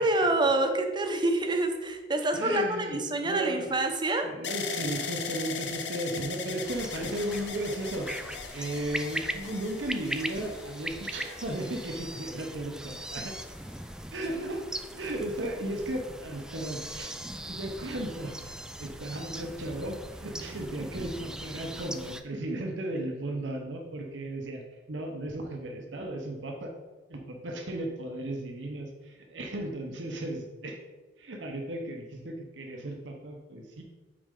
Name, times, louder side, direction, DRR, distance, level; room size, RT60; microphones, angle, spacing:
voice 1, 0.0-4.3, right 2 dB, 25° right, 5 dB, 0.7 m, -27 dB
voice 2, 2.3-3.6 4.2-13.3 14.1-14.6 15.0-17.1 17.5-26.7 27.1-30.8 31.2-33.8, right 1 dB, 80° right, 2 dB, 0.9 m, -35 dB
sound 1, 4.4-12.4 13.2-13.8, left 6 dB, 70° left, 0.7 m, -39 dB
sound 2, 6.6-22.2, right 1 dB, 5° right, 0.3 m, -40 dB
8.6 x 4.3 x 3.7 m, 1.2 s
head